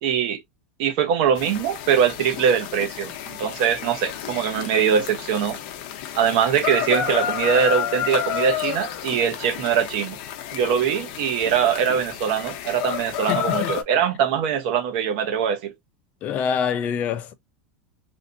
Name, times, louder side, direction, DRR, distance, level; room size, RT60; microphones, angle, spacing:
voice 1, 0.0-0.4 0.8-5.6 6.1-10.2 10.5-15.7, right 8 dB, 55° right, 0.9 m, -22 dB
sound 1, 1.3-13.8, left 10 dB, 50° left, 0.8 m, -30 dB
voice 2, 13.3-13.7 16.2-17.3, left 7 dB, 30° left, 0.4 m, -25 dB
3.3 x 2.7 x 2.5 m
supercardioid pair, 165°, 5 cm